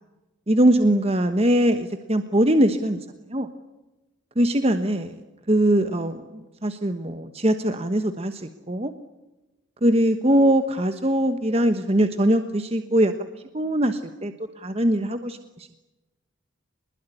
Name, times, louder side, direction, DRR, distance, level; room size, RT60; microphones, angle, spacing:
voice 1, 0.5-3.0 3.3-3.5 4.4-5.2 5.5-6.2 6.6-8.9 9.8-13.3 13.5-15.7, right 1 dB, 30° right, 8 dB, 1.2 m, -21 dB
24.5 x 21.5 x 9.9 m, 1.0 s
head